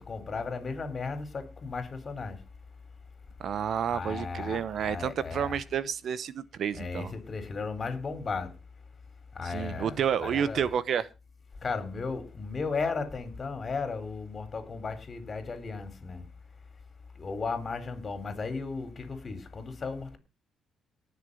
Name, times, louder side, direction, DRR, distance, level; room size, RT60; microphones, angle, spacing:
voice 1, 0.0-2.4 3.9-5.6 6.8-8.5 9.4-10.0 10.2-10.6 11.6-16.2 17.2-20.2, left 4 dB, 35° left, 3.8 m, -35 dB
voice 2, 3.4-7.1 9.4-11.1, right 8 dB, 60° right, 0.9 m, -30 dB
18.5 x 6.8 x 5.4 m
cardioid pair, 90°, 0 cm